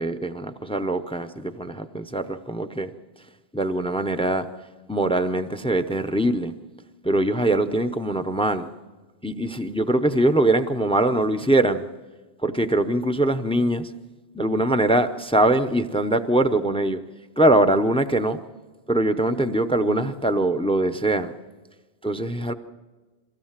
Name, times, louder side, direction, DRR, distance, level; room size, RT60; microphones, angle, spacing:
voice 1, 0.0-2.9 3.5-4.5 4.9-6.5 7.0-8.7 9.2-11.9 12.4-13.9 14.3-17.0 17.4-18.4 18.9-21.3 22.0-22.5, right 1 dB, 5° left, 10 dB, 0.5 m, -22 dB
23.0 x 16.0 x 7.4 m, 1.3 s
omnidirectional pair, 1.1 m